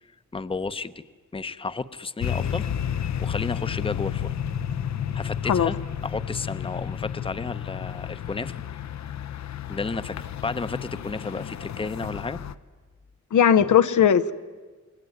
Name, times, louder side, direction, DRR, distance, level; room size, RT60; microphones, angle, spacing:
voice 1, 0.3-1.0 1.3-2.7 3.0-4.3 5.1-5.8 6.0-8.6 9.7-12.4, left 4 dB, 20° left, 13 dB, 0.8 m, -32 dB
sound 1, 2.2-12.5, left 9 dB, 70° left, 0.8 m, -31 dB
voice 2, 13.3-14.3, left 8 dB, 90° left, 10 dB, 1.0 m, -18 dB
28.0 x 21.5 x 9.5 m, 1.4 s
wide cardioid pair, 130°, 29 cm